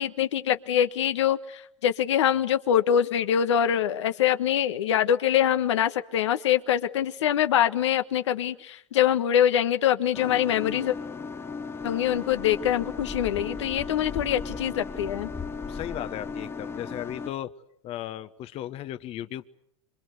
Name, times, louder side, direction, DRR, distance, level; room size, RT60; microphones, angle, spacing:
voice 1, 0.0-10.9 11.8-15.3, left 10 dB, 75° left, 9 dB, 1.4 m, -24 dB
sound 1, 10.1-17.3, left 5 dB, 15° left, 1.1 m, -36 dB
voice 2, 15.7-17.5 17.8-19.5, left 12 dB, 40° left, 12 dB, 1.1 m, -35 dB
27.0 x 25.5 x 8.1 m, 0.70 s
hypercardioid pair, 100°, 15 cm